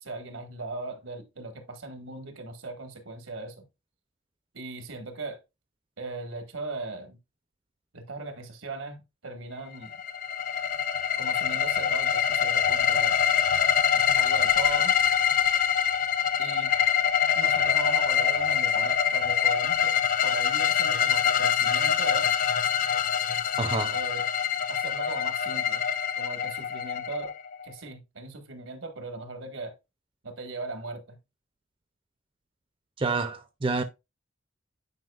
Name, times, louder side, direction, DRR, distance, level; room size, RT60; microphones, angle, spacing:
voice 1, 0.0-3.6 4.5-5.4 6.0-7.2 7.9-9.9 11.2-13.2 14.0-15.1 16.4-16.7 17.3-19.9 20.2-22.3 23.9-24.2 24.7-25.8 26.2-27.3 27.6-29.7 30.2-31.2, right 3 dB, 85° right, 1.5 m, -38 dB
sound 1, 9.8-27.7, left 8 dB, 40° left, 0.4 m, -25 dB
voice 2, 23.6-24.0 33.0-33.8, right 3 dB, 25° right, 0.4 m, -28 dB
9.4 x 4.8 x 2.3 m
head